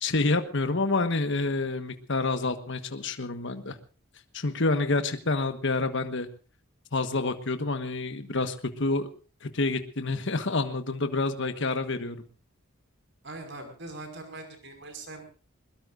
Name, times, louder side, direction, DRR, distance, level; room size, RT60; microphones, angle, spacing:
voice 1, 0.0-3.8 4.3-6.3 6.9-9.1 9.4-12.2, left 3 dB, 60° left, 9 dB, 1.4 m, -28 dB
voice 2, 13.2-15.2, right 2 dB, 55° right, 6 dB, 5.5 m, -41 dB
22.0 x 21.0 x 2.6 m, 0.36 s
head